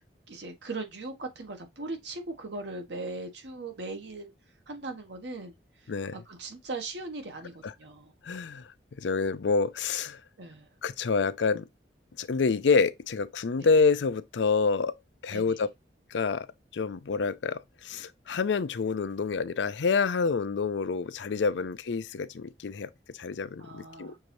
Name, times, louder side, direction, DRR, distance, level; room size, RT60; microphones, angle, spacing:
voice 1, 0.3-4.3 4.7-5.6 6.1-8.1 10.4-10.7 13.6-13.7 15.3-15.6 23.6-24.2, right 2 dB, 75° right, 1.3 m, -39 dB
voice 2, 8.2-10.2 10.8-11.7 12.2-15.0 15.2-15.7 16.1-16.5 16.7-24.1, left 4 dB, 90° left, 0.5 m, -27 dB
6.4 x 2.7 x 3.0 m
head